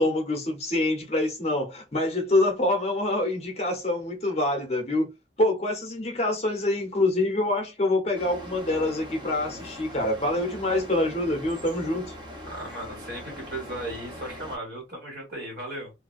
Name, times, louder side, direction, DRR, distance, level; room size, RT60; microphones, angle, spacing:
voice 1, 0.0-5.1 5.4-12.1, left 2 dB, 35° left, 0.7 m, -25 dB
sound 1, 8.1-14.6, equal, 25° right, 0.7 m, -41 dB
voice 2, 12.5-15.9, right 1 dB, 70° right, 1.4 m, -36 dB
2.5 x 2.2 x 2.3 m
head